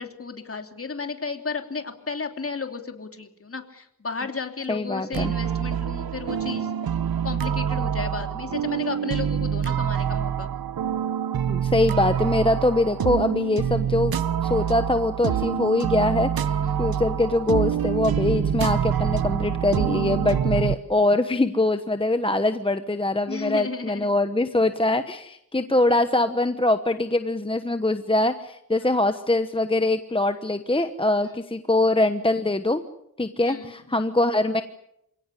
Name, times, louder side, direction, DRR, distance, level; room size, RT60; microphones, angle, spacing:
voice 1, 0.0-6.7 7.2-10.5 15.3-15.5 16.6-16.8 23.3-24.1 28.7-28.9 31.2-31.3 33.4-34.0, left 4 dB, 40° left, 5 dB, 3.1 m, -34 dB
voice 2, 4.7-5.3 11.5-32.8 33.2-34.6, left 2 dB, 15° left, 9 dB, 1.1 m, -23 dB
sound 1, 5.1-20.8, right 8 dB, 80° right, 1.0 m, -26 dB
28.5 x 17.5 x 9.8 m, 0.81 s
wide cardioid pair, 110°, 35 cm